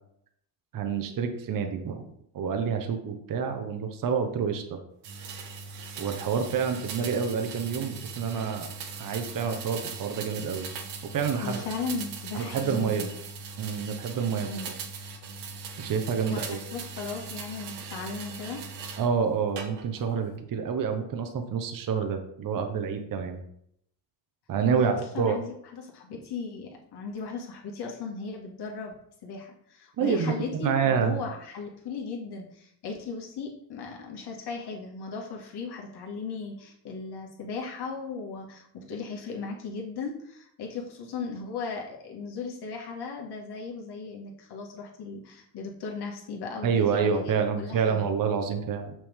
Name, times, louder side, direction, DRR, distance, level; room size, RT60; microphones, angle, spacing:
voice 1, 0.7-4.8 6.0-8.7 9.0-10.7 11.1-11.6 12.3-13.1 13.6-14.5 15.8-16.6 19.0-23.4 24.5-25.4 30.0-30.3 30.6-31.1 46.6-48.9, right 6 dB, 45° right, 6 dB, 1.0 m, -28 dB
sound 1, 5.0-19.1 19.6-20.1, right 5 dB, 65° right, 1.4 m, -40 dB
voice 2, 11.4-13.1 14.5-14.7 16.2-18.6 24.8-48.1, left 4 dB, 60° left, 0 dB, 2.0 m, -37 dB
6.2 x 6.0 x 3.6 m, 0.72 s
cardioid pair, 95°, 45 cm